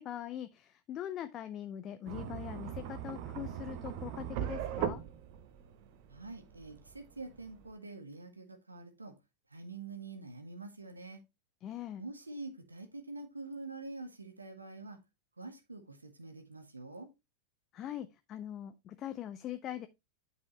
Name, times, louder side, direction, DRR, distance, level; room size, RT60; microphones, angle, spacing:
voice 1, 0.0-5.0 11.6-12.0 17.7-19.9, left 11 dB, 30° left, 0.5 m, -42 dB
sound 1, 2.1-7.7, right 10 dB, 45° right, 0.9 m, -40 dB
voice 2, 6.1-9.2 9.5-11.2 12.0-15.0 15.4-17.1, right 3 dB, 80° right, 1.3 m, -46 dB
9.5 x 4.9 x 3.1 m
figure-of-eight pair, 90°, 0 cm